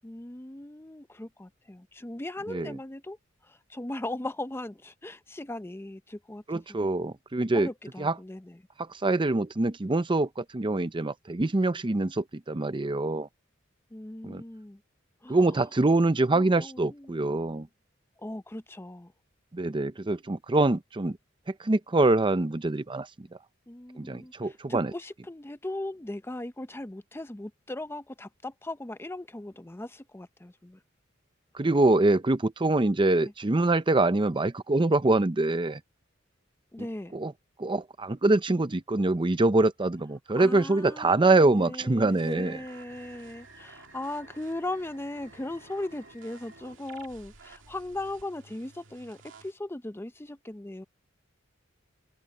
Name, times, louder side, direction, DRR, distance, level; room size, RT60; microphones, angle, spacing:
voice 1, 0.0-3.2 3.4-6.9 7.5-8.7 13.9-14.8 15.2-15.6 16.3-17.6 18.2-19.1 23.7-30.8 33.2-33.3 36.7-37.2 40.4-50.8, left 1 dB, 10° left, 0.6 m, -38 dB
voice 2, 6.5-7.7 8.0-8.1 8.9-13.3 14.2-14.4 15.3-17.7 19.5-21.2 21.6-23.3 24.0-24.9 31.5-35.8 37.1-37.3 37.6-42.6, right 2 dB, 25° right, 0.6 m, -24 dB
sound 1, 42.1-49.5, right 4 dB, 70° right, 2.4 m, -52 dB
open air
head